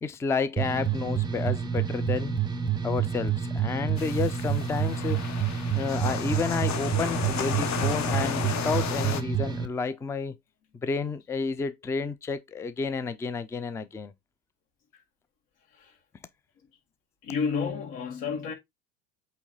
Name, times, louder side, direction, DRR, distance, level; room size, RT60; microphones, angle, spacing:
voice 1, 0.0-2.3 2.8-5.2 5.7-10.4 10.8-14.1, left 4 dB, 5° left, 0.4 m, -31 dB
sound 1, 0.6-9.7, right 8 dB, 10° right, 1.0 m, -28 dB
sound 2, 4.0-9.2, left 8 dB, 35° left, 1.0 m, -33 dB
voice 2, 17.2-18.5, left 5 dB, 60° left, 2.5 m, -31 dB
8.2 x 3.3 x 3.8 m
hypercardioid pair, 85°, 48 cm